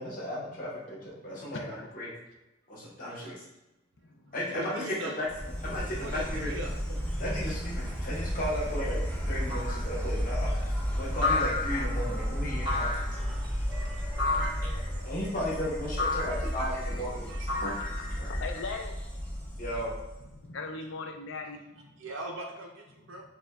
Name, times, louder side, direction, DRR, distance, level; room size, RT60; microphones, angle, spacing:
voice 1, 0.0-2.1 2.7-3.4 4.3-5.3 5.6-6.6 7.2-10.5 11.0-12.9 14.4-18.6 19.6-19.9, equal, 40° left, -6 dB, 0.9 m, -35 dB
voice 2, 1.3-1.9 4.0-4.3 13.4-13.6 14.4-14.6 17.3-19.6 20.3-21.9, left 4 dB, 65° left, 4 dB, 0.4 m, -42 dB
voice 3, 4.4-5.3 6.0-6.7 8.4-8.6 13.3-14.6 15.2-15.3 16.3-16.7 17.3-17.8 22.0-23.2, right 2 dB, 70° right, 0 dB, 0.5 m, -42 dB
Insect, 5.3-20.4, equal, 5° left, 0.5 m, -33 dB
sound 1, 9.5-9.9 11.2-12.0 12.7-13.2 14.2-14.7 16.0-16.5 17.5-18.2, left 3 dB, 90° left, 1.2 m, -31 dB
4.7 x 2.2 x 2.3 m, 0.99 s
head